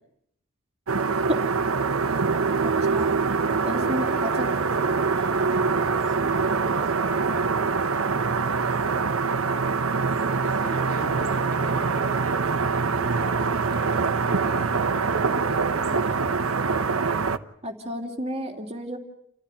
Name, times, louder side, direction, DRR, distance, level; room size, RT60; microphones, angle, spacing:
sound 1, 0.9-17.4, right 4 dB, 80° right, 1.1 m, -24 dB
voice 1, 2.6-3.2 3.6-4.5 17.6-19.0, equal, 30° right, 3 dB, 2.9 m, -31 dB
voice 2, 3.7-9.6 10.4-16.3, equal, 40° left, 2 dB, 4.0 m, -42 dB
29.5 x 15.0 x 10.0 m, 0.74 s
head